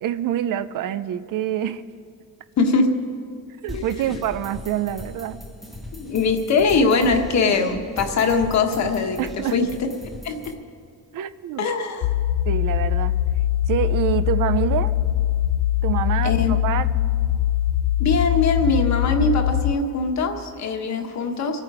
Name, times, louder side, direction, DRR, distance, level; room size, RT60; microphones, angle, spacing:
voice 1, 0.0-1.8 3.6-5.4 9.2-9.6 11.1-11.7 12.5-13.1 13.7-14.9 15.8-16.9, right 10 dB, 65° right, 14 dB, 0.6 m, -26 dB
voice 2, 2.6-2.9 3.7-3.9 5.9-9.7 10.2-10.4 11.6-12.1 16.2-16.5 18.0-21.6, left 4 dB, 50° left, 4 dB, 1.3 m, -21 dB
sound 1, 3.7-10.5, left 1 dB, ahead, 1.2 m, -38 dB
sound 2, 12.0-19.7, left 12 dB, 70° left, 0.5 m, -22 dB
26.0 x 9.2 x 4.8 m, 2.2 s
cardioid pair, 175°, 35 cm